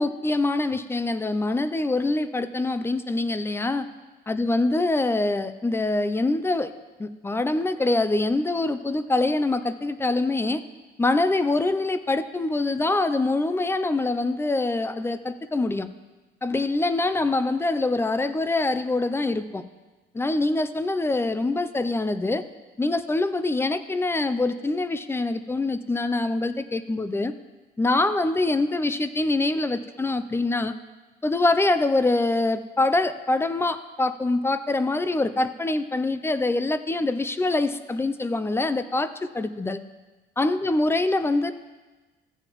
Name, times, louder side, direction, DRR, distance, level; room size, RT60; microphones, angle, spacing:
voice 1, 0.0-3.9 4.3-6.7 7.0-10.6 11.0-15.9 16.4-19.6 20.1-22.4 22.8-27.3 27.8-30.7 31.2-39.1 39.3-39.8 40.4-41.5, left 2 dB, 10° left, 11 dB, 0.4 m, -24 dB
14.5 x 7.8 x 3.0 m, 1.2 s
cardioid pair, 120°, 20 cm